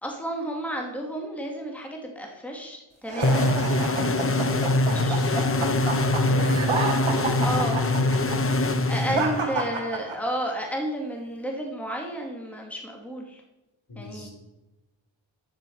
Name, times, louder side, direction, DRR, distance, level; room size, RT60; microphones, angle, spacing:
voice 1, 0.0-5.2 7.4-7.8 8.9-13.4 13.9-14.3, equal, 5° left, 1 dB, 2.3 m, -32 dB
sound 1, 3.1-10.5, right 4 dB, 80° right, 2.1 m, -30 dB
sound 2, 3.2-9.7, left 2 dB, 30° left, 0.8 m, -24 dB
voice 2, 4.5-6.7 7.0-9.3 13.9-14.3, left 4 dB, 55° left, -2 dB, 4.5 m, -36 dB
11.0 x 7.7 x 4.7 m, 1.0 s
cardioid pair, 40°, 48 cm